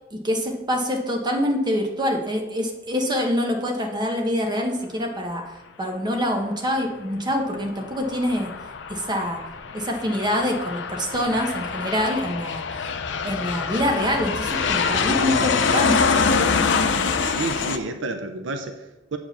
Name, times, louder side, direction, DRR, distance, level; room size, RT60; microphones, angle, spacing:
voice 1, 0.1-8.5 8.9-9.4 9.7-12.6 13.2-16.2, equal, 25° right, 1 dB, 1.3 m, -25 dB
Aircraft, 7.6-17.8, left 5 dB, 70° left, 0.6 m, -25 dB
voice 2, 17.1-19.2, right 3 dB, 75° right, 7 dB, 0.7 m, -31 dB
7.7 x 5.1 x 6.7 m, 1.1 s
head